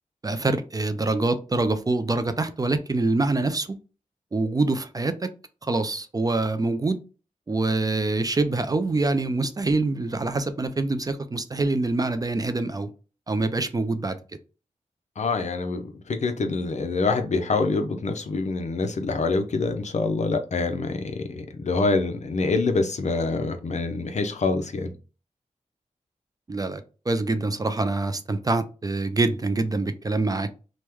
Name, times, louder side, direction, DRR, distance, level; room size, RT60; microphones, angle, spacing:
voice 1, 0.2-3.7 4.3-5.3 5.6-7.0 7.5-12.9 13.3-14.2 26.5-30.5, right 2 dB, 25° right, 0.3 m, -25 dB
voice 2, 15.2-24.9, left 3 dB, 60° left, 0.5 m, -26 dB
3.0 x 2.1 x 3.4 m
wide cardioid pair, 100°, 14 cm